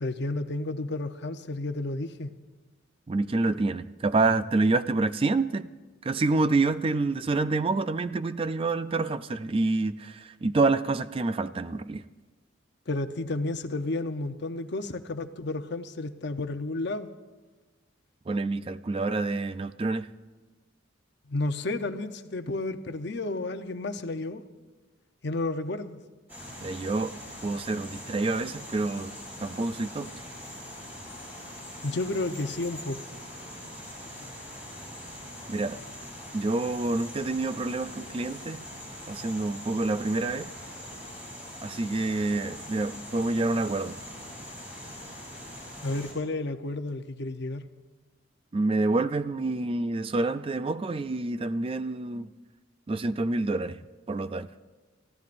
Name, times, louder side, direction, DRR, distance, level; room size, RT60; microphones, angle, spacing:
voice 1, 0.0-2.3 12.9-17.1 21.3-24.4 25.2-26.0 31.8-33.0 45.8-47.6, left 2 dB, 60° left, 8 dB, 0.8 m, -31 dB
voice 2, 3.1-5.7 6.0-12.0 18.3-20.1 26.6-27.2 27.4-29.1 29.4-30.1 35.5-35.8 36.3-38.6 39.1-40.5 41.6-44.0 48.5-52.3 52.9-53.8 54.1-54.5, right 3 dB, 30° right, 12 dB, 0.4 m, -27 dB
sound 1, 26.3-46.1, left 1 dB, 10° right, 5.0 m, -42 dB
29.5 x 14.5 x 2.6 m, 1.3 s
head